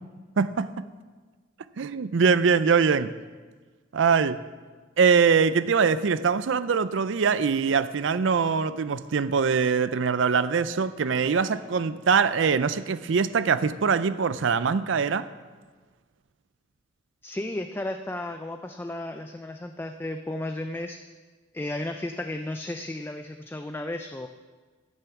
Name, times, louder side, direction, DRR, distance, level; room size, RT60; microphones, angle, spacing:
voice 1, 0.4-0.8 1.8-3.1 3.9-4.4 5.0-15.3, right 5 dB, 65° right, 0.5 m, -23 dB
voice 2, 17.2-21.0 21.5-24.3, left 1 dB, 10° left, 0.3 m, -34 dB
14.5 x 6.7 x 5.8 m
head